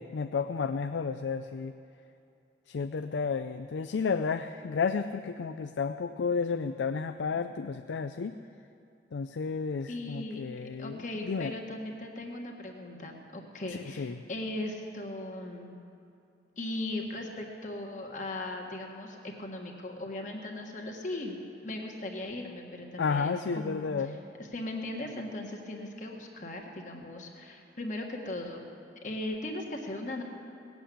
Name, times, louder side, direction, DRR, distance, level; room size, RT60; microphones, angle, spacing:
voice 1, 0.0-1.7 2.7-8.4 9.1-11.5 13.7-14.2 23.0-24.2, left 5 dB, 85° left, 9 dB, 0.4 m, -32 dB
voice 2, 9.9-10.4 10.8-15.7 16.6-23.9 24.5-28.6 29.0-30.2, left 1 dB, 45° left, 2 dB, 1.7 m, -38 dB
18.5 x 8.0 x 8.5 m, 2.7 s
head